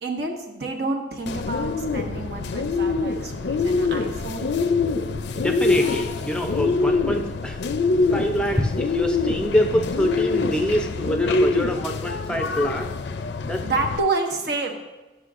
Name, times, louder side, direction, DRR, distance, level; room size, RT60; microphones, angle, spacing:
voice 1, 0.0-4.5 13.6-14.7, right 3 dB, 65° right, 3 dB, 1.0 m, -28 dB
Bird, 1.3-14.0, left 3 dB, 70° left, 0.4 m, -24 dB
voice 2, 5.3-7.6 8.1-12.9 13.4-13.6, equal, 5° left, 3 dB, 0.5 m, -25 dB
11.5 x 6.4 x 2.5 m, 1.1 s
head